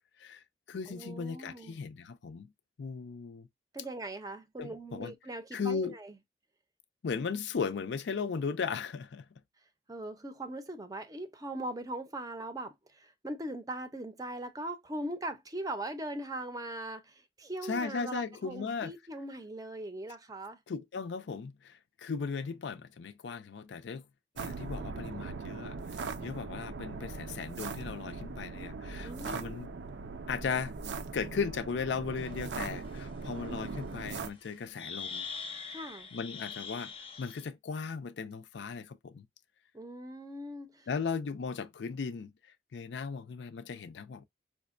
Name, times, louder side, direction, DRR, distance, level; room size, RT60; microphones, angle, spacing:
voice 1, 0.2-2.5 2.8-3.5 4.6-5.1 5.5-5.9 7.0-9.3 17.7-18.9 20.7-24.1 24.4-25.8 26.2-29.7 30.3-30.7 31.1-35.3 36.1-36.9 37.2-39.3 40.9-42.3 42.7-44.2, left 5 dB, 80° left, 0.4 m, -37 dB
voice 2, 0.9-1.8 3.7-6.2 9.9-20.6 29.0-29.6 35.7-36.1 39.7-40.9, right 1 dB, 20° right, 0.5 m, -40 dB
sound 1, 24.4-34.3, right 4 dB, 75° right, 0.4 m, -40 dB
sound 2, 32.3-32.4 32.9-33.0 34.4-34.5 34.8-37.5, left 5 dB, 30° left, 0.6 m, -42 dB
4.9 x 2.1 x 2.4 m
head